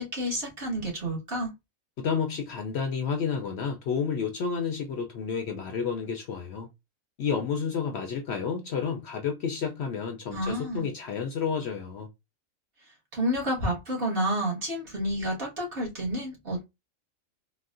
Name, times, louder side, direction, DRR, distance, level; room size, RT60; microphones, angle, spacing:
voice 1, 0.0-1.5 10.3-10.9 13.1-16.6, equal, 45° right, 1.5 m, -30 dB
voice 2, 2.0-6.7 7.2-12.1, left 6 dB, 65° left, 0.7 m, -30 dB
3.9 x 2.1 x 2.4 m
omnidirectional pair, 1.4 m